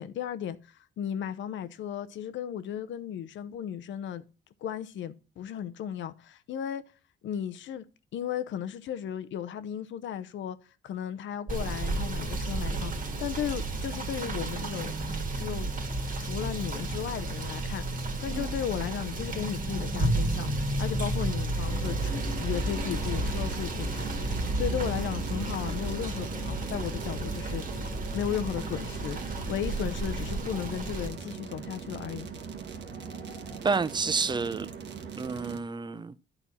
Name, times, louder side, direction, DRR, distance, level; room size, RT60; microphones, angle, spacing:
voice 1, 0.0-4.2 4.6-6.8 7.2-7.9 8.1-10.6 10.8-12.9 13.2-15.0 15.4-15.7 16.2-17.8 18.2-20.5 20.8-27.6 28.1-32.3, left 9 dB, 70° left, 0.8 m, -35 dB
Rain / Motor vehicle (road), 11.5-31.1, right 2 dB, 45° right, 1.7 m, -32 dB
sound 1, 21.1-33.6, left 3 dB, 25° left, 1.1 m, -45 dB
sound 2, 21.8-35.6, right 6 dB, 65° right, 1.3 m, -41 dB
voice 2, 33.6-34.7 35.2-36.2, right 4 dB, 20° right, 0.5 m, -29 dB
10.5 x 4.4 x 4.2 m
cardioid pair, 90°, 20 cm